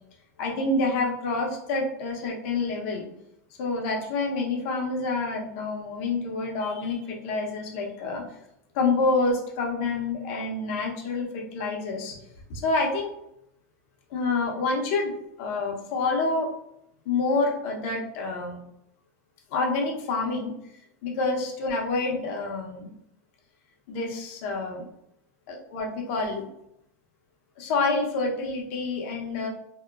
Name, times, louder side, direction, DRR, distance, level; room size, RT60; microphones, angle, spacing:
voice 1, 0.4-3.0 3.6-8.2 8.7-12.2 12.5-13.1 14.1-15.1 15.4-16.5 17.1-18.6 19.5-20.5 21.0-22.9 23.9-24.8 25.5-26.5 27.6-29.5, left 3 dB, 60° left, -1 dB, 0.7 m, -27 dB
2.8 x 2.1 x 2.3 m, 0.77 s
supercardioid pair, 135°, 8 cm